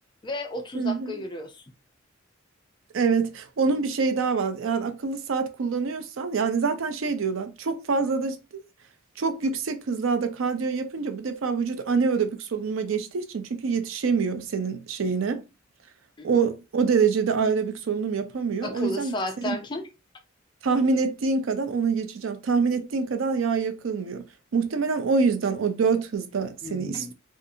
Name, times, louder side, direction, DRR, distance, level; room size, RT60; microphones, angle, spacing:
voice 1, 0.2-1.6 16.2-16.3 18.6-19.9 26.6-27.1, left 1 dB, 25° left, 0.4 m, -33 dB
voice 2, 0.7-1.2 2.9-8.4 9.2-15.4 16.2-19.1 19.4-19.6 20.6-24.2 24.5-27.1, right 5 dB, 75° right, 0.5 m, -25 dB
2.6 x 2.4 x 2.6 m
head